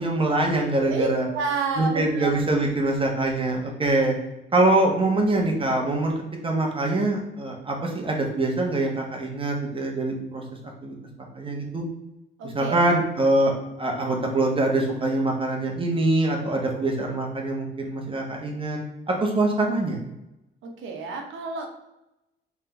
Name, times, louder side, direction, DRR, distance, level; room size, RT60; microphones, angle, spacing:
voice 1, 0.0-1.2 1.8-4.1 4.5-6.1 6.4-10.4 10.8-10.9 11.3-11.9 12.4-18.8 19.1-20.0, right 2 dB, 25° right, 1 dB, 1.1 m, -24 dB
voice 2, 0.9-2.3 12.4-12.8 20.6-21.7, right 4 dB, 80° right, 2 dB, 0.8 m, -29 dB
3.6 x 3.4 x 3.4 m, 0.91 s
cardioid pair, 90°, 20 cm